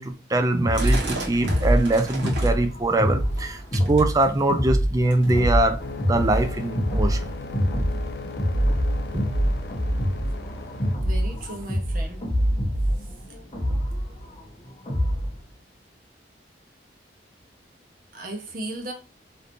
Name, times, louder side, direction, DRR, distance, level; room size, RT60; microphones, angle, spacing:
voice 1, 0.0-7.3 9.1-9.2, right 2 dB, 20° right, 0.4 m, -23 dB
sound 1, 0.6-15.4, equal, 30° left, 0.9 m, -25 dB
sound 2, 0.7-2.7 3.1-3.4 3.7-4.6 5.1-5.5 6.2-6.3 6.5-6.6 7.2-7.3 8.0-8.1, right 3 dB, 75° right, 1.3 m, -35 dB
sound 3, 5.8-11.0, left 3 dB, 60° left, 0.5 m, -37 dB
voice 2, 11.0-12.3 18.1-18.9, right 1 dB, 50° right, 0.9 m, -36 dB
3.4 x 2.7 x 2.5 m
head